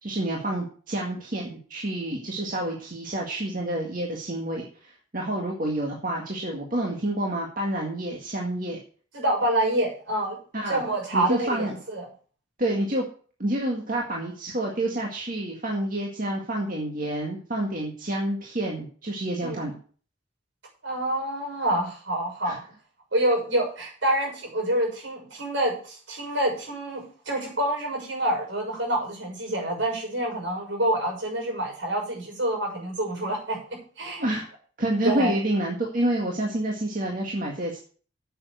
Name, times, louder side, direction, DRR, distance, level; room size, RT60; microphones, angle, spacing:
voice 1, 0.0-8.8 10.5-10.8 11.1-11.7 12.6-13.0 13.4-19.8 22.4-22.6 34.2-34.5 34.8-37.8, right 1 dB, 45° right, -1 dB, 1.9 m, -28 dB
voice 2, 9.1-10.4 10.7-12.1 19.4-19.7 20.8-22.6 23.1-34.3 35.0-35.4, right 1 dB, 70° right, 0 dB, 6.5 m, -27 dB
8.7 x 7.2 x 8.1 m, 0.43 s
head